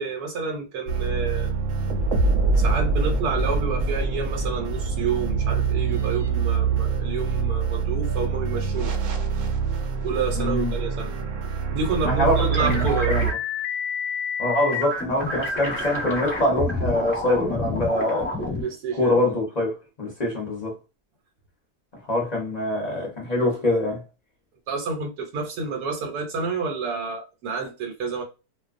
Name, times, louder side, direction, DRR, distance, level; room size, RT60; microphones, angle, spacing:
voice 1, 0.0-1.5 2.6-8.9 10.0-11.1 11.7-13.1 18.5-19.2 24.7-28.2, right 5 dB, 80° right, 1.2 m, -29 dB
sound 1, 0.9-13.3, right 4 dB, 65° right, 0.8 m, -25 dB
voice 2, 10.4-10.7 12.0-13.3 14.4-18.3 19.0-20.7 22.1-24.0, left 1 dB, 40° left, 0.6 m, -24 dB
sound 2, 12.5-18.6, left 2 dB, 10° left, 1.1 m, -28 dB
2.5 x 2.2 x 2.4 m
omnidirectional pair, 1.6 m